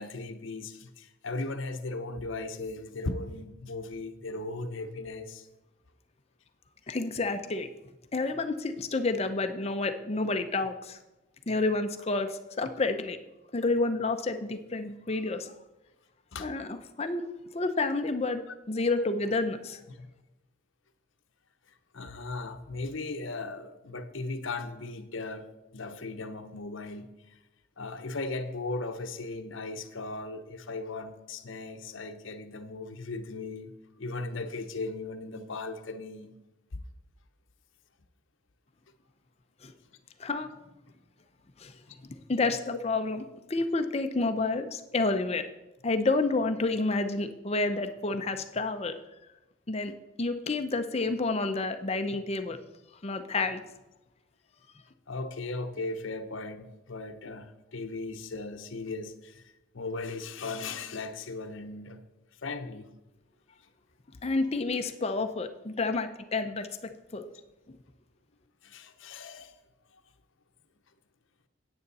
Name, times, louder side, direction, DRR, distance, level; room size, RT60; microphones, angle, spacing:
voice 1, 0.0-5.5 16.3-16.5 19.9-20.1 21.9-25.5 25.7-27.4 27.8-33.7 34.0-36.3 41.9-42.0 55.1-62.0 62.4-62.9 68.6-69.5, left 3 dB, 65° left, 8 dB, 0.8 m, -37 dB
voice 2, 6.9-7.7 8.1-11.0 11.5-13.2 13.5-15.5 16.4-17.2 17.5-18.4 18.7-19.8 39.6-39.7 40.2-40.5 41.6-41.7 42.0-43.2 43.5-45.4 45.8-48.9 49.7-49.9 50.2-52.6 53.0-53.6 64.2-66.7 67.1-67.3 67.7-67.8, left 3 dB, 30° left, 8 dB, 0.6 m, -29 dB
9.4 x 8.8 x 4.1 m, 1.0 s
head